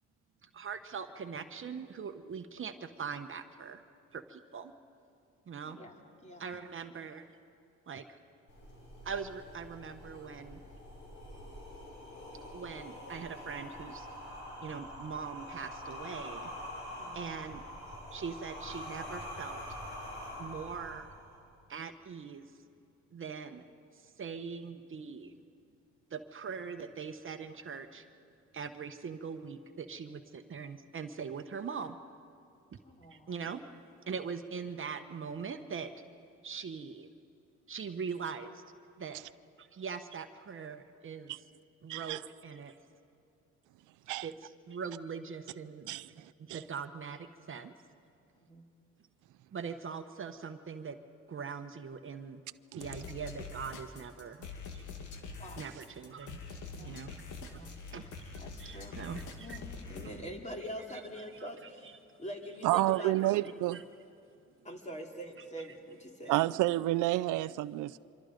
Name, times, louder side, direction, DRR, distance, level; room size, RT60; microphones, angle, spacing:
voice 1, 0.5-3.8 4.1-4.7 5.5-5.8 6.4-7.3 7.9-8.0 9.0-10.6 12.5-14.1 14.6-16.5 17.1-17.7 18.1-19.6 20.4-21.1 21.7-22.4 23.1-23.6 24.2-25.3 26.1-28.0 28.5-32.0 33.1-33.6 34.1-35.9 36.4-37.1 37.7-38.5 39.0-39.2 39.6-41.3 41.8-42.7 44.2-46.0 46.4-47.7 49.5-51.0 51.3-52.4 52.7-54.5 55.6-56.4 56.7-57.6 57.9-59.6 61.4-61.5 62.9-63.0 63.7-63.8, right 6 dB, 40° right, 1.0 m, -41 dB
voice 2, 5.7-6.4 16.9-17.4 32.8-33.5 48.4-48.6 55.4-55.6 56.7-57.2 57.5-58.1 58.4-59.0 59.4-61.9 62.2-63.5 64.6-66.4, equal, 25° left, 2.8 m, -45 dB
sound 1, 8.5-21.5, left 1 dB, 65° left, 6.6 m, -45 dB
voice 3, 41.9-42.2 44.1-44.3 45.9-46.6 52.7-52.9 62.6-63.8 66.3-68.0, right 17 dB, 85° right, 0.5 m, -30 dB
sound 2, 52.8-60.2, left 4 dB, 90° left, 2.1 m, -45 dB
25.5 x 25.0 x 5.2 m
cardioid pair, 90°, 30 cm